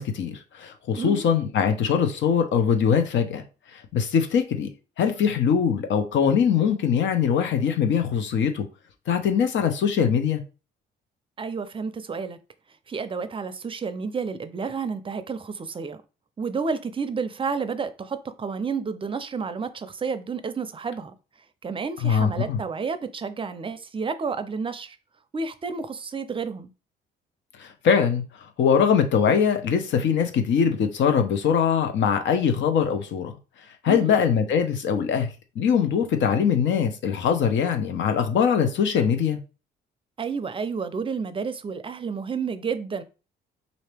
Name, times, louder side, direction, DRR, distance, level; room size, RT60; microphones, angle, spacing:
voice 1, 0.0-3.4 3.7-4.7 5.0-8.7 9.1-10.4 22.0-22.6 27.6-28.2 28.6-33.3 33.8-35.3 35.6-39.4, left 7 dB, 70° left, 0.8 m, -22 dB
voice 2, 0.9-1.3 11.4-12.4 12.9-16.0 16.4-21.1 21.6-25.0 25.3-26.7 33.9-34.1 40.2-43.0, right 5 dB, 25° right, 0.5 m, -30 dB
4.0 x 2.8 x 3.4 m
cardioid pair, 90°, 20 cm